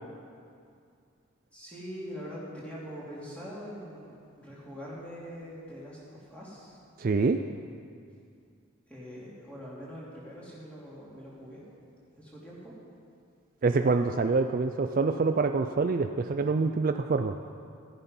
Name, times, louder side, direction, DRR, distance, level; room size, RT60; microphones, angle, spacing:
voice 1, 1.5-6.8 8.9-11.6 12.2-12.7, equal, 5° left, -7 dB, 3.0 m, -43 dB
voice 2, 7.0-7.4 13.6-17.3, right 4 dB, 40° right, 7 dB, 0.4 m, -26 dB
14.0 x 11.0 x 5.4 m, 2.3 s
head